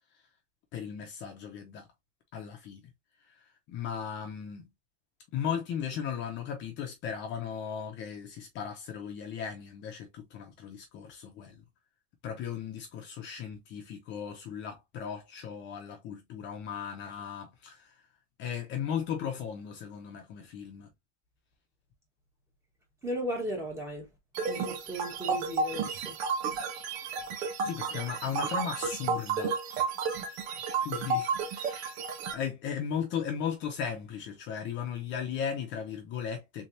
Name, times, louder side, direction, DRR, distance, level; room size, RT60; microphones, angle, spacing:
voice 1, 0.7-1.9 2.3-2.8 3.3-4.7 5.3-11.6 12.2-17.9 18.4-20.9 27.6-30.4 30.8-32.0 32.3-36.7, left 7 dB, 35° left, 0.8 m, -37 dB
voice 2, 23.0-24.1 24.5-26.1, equal, 10° right, 1.4 m, -36 dB
sound 1, 24.4-32.3, right 4 dB, 75° right, 1.1 m, -32 dB
3.6 x 3.4 x 2.7 m
cardioid pair, 175°, 33 cm